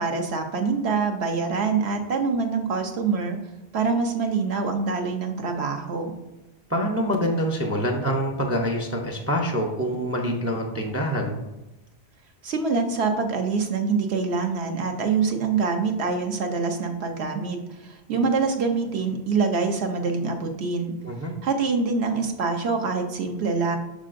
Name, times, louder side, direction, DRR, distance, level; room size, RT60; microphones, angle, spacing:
voice 1, 0.0-3.4 3.7-6.1 12.4-20.9 21.4-23.8, right 4 dB, 65° right, 3 dB, 1.0 m, -25 dB
voice 2, 6.7-11.4 21.0-21.3, equal, 20° right, 2 dB, 0.4 m, -25 dB
6.4 x 6.3 x 2.5 m, 0.99 s
omnidirectional pair, 1.2 m